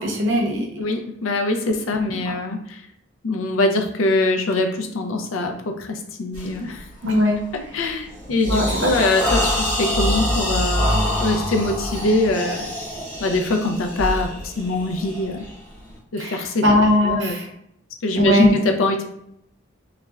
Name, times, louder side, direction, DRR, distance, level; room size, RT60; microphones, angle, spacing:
voice 1, 0.0-0.7 2.3-2.4 7.0-7.4 8.5-9.1 16.2-17.5 18.1-18.5, equal, 75° right, 1 dB, 0.7 m, -20 dB
voice 2, 0.8-2.8 3.2-6.8 7.5-12.7 13.2-15.5 16.1-16.6 17.0-17.4 18.0-19.0, left 2 dB, 90° left, 5 dB, 0.4 m, -23 dB
sound 1, 6.3-6.6 7.1-7.4 7.8-15.9, equal, 25° left, 1.2 m, -25 dB
3.1 x 2.4 x 2.2 m, 0.75 s
head